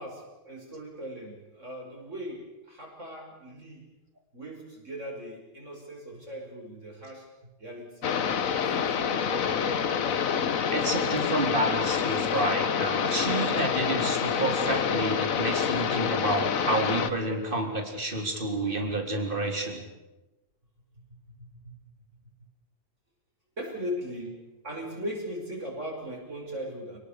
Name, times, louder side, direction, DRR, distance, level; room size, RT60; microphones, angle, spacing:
voice 1, 0.0-3.9 4.3-7.3 7.6-9.0 11.7-12.2 21.1-21.7 23.6-27.0, equal, 60° right, 0 dB, 6.1 m, -39 dB
sound 1, 8.0-17.1, left 7 dB, 75° left, 1.5 m, -27 dB
voice 2, 10.7-19.8, right 1 dB, 35° right, 3 dB, 4.2 m, -29 dB
29.0 x 20.0 x 6.8 m, 1.0 s
omnidirectional pair, 1.5 m